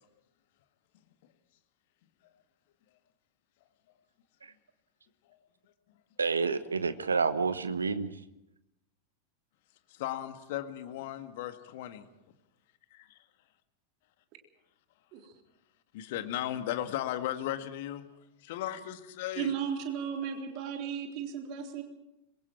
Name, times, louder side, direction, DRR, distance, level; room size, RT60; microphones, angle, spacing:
voice 1, 6.2-8.1, right 4 dB, 75° right, 13 dB, 1.1 m, -29 dB
voice 2, 9.9-12.1 15.9-18.1 18.4-19.5, left 12 dB, 50° left, 8 dB, 1.8 m, -36 dB
voice 3, 19.4-21.8, right 8 dB, 40° right, 3 dB, 3.6 m, -35 dB
25.5 x 23.0 x 4.6 m, 0.89 s
figure-of-eight pair, 90°, 0 cm